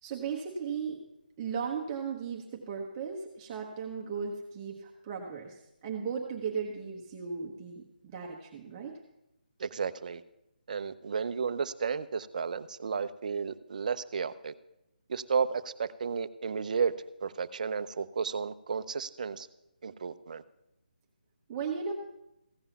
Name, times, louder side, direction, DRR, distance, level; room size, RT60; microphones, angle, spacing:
voice 1, 0.0-1.0 1.4-7.9 8.1-9.0 21.5-21.9, right 6 dB, 20° right, -1 dB, 1.1 m, -36 dB
voice 2, 9.6-10.2 10.7-14.5 15.1-19.5 19.8-20.4, right 6 dB, 50° right, 14 dB, 0.6 m, -33 dB
15.5 x 5.5 x 7.0 m, 0.87 s
figure-of-eight pair, 160°, 5 cm